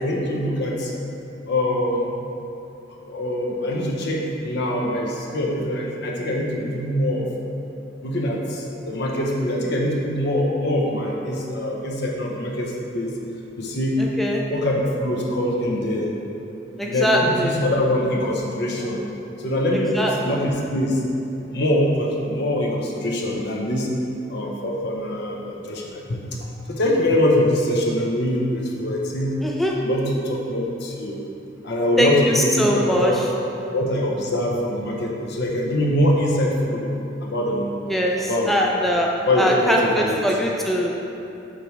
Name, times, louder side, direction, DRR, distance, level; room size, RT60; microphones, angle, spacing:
voice 1, 0.0-0.9 1.5-2.2 3.1-7.3 8.0-13.1 13.6-14.0 14.5-16.1 16.8-19.0 19.4-21.0 21.5-23.9 24.3-29.4 29.8-31.2 31.6-33.2 33.7-36.9 37.2-37.7 38.1-38.5 39.2-40.2, left 1 dB, 60° left, -2 dB, 1.0 m, -23 dB
voice 2, 16.8-17.6 20.0-20.1 29.4-29.7 32.0-33.1 37.9-39.1 39.4-40.9, equal, ahead, -2 dB, 0.4 m, -21 dB
7.6 x 3.3 x 5.2 m, 2.8 s
head